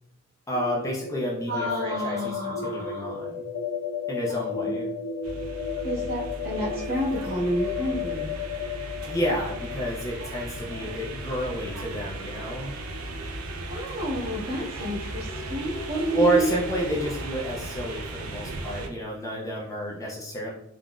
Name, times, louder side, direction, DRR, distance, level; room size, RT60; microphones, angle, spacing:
sound 1, 0.5-12.2, left 6 dB, 60° left, 0.7 m, -34 dB
voice 1, 0.5-3.4 4.1-4.9 9.1-12.7 16.1-20.5, right 1 dB, 15° left, -3 dB, 0.4 m, -30 dB
voice 2, 1.5-3.0 4.3-4.8 5.8-8.3 13.7-16.5, equal, 45° right, -5 dB, 0.9 m, -30 dB
sound 2, 5.2-18.9, right 1 dB, 90° right, 0.4 m, -36 dB
3.6 x 2.0 x 2.3 m, 0.74 s
head